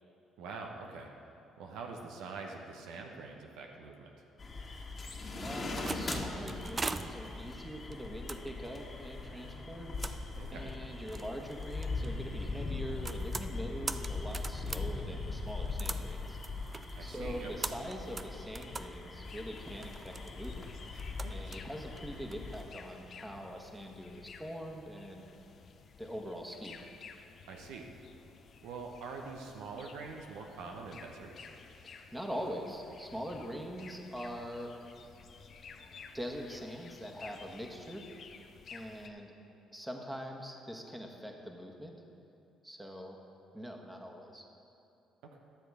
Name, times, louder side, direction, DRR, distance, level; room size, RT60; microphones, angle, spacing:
voice 1, 0.4-1.1 1.6-4.1 10.4-10.7 17.0-17.5 21.2-21.5 27.5-27.9 28.6-31.5 45.3-45.4, right 4 dB, 75° right, 1 dB, 0.9 m, -45 dB
sound 1, 4.4-22.6, left 3 dB, 35° left, 1.7 m, -40 dB
voice 2, 5.3-9.9 10.5-16.4 17.0-20.7 21.3-25.3 26.0-26.8 31.8-34.7 36.1-38.0 38.7-39.3 39.7-41.9 42.6-43.2 43.5-44.4, equal, 10° right, 2 dB, 1.4 m, -43 dB
sound 2, 5.7-22.7, right 3 dB, 30° right, 0.4 m, -44 dB
sound 3, 19.2-39.1, left 5 dB, 55° left, 0.7 m, -54 dB
11.5 x 6.8 x 4.9 m, 2.7 s
hypercardioid pair, 60°, 0 cm